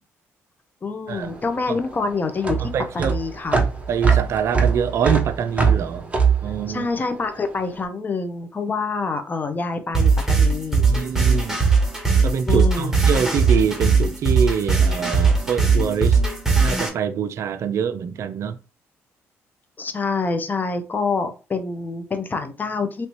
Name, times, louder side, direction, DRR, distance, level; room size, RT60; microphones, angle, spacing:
voice 1, 0.8-3.6 6.7-11.0 12.5-12.9 19.8-23.1, left 4 dB, 35° left, 0.7 m, -26 dB
sound 1, 1.1-7.6, right 6 dB, 25° right, 1.0 m, -22 dB
voice 2, 2.6-3.1 3.9-6.1 6.4-6.9 10.9-11.6 12.2-16.2 16.6-18.6, right 7 dB, 60° right, 0.4 m, -25 dB
sound 2, 9.9-16.9, right 4 dB, 5° right, 1.3 m, -19 dB
3.2 x 2.8 x 3.0 m
supercardioid pair, 70°, 5 cm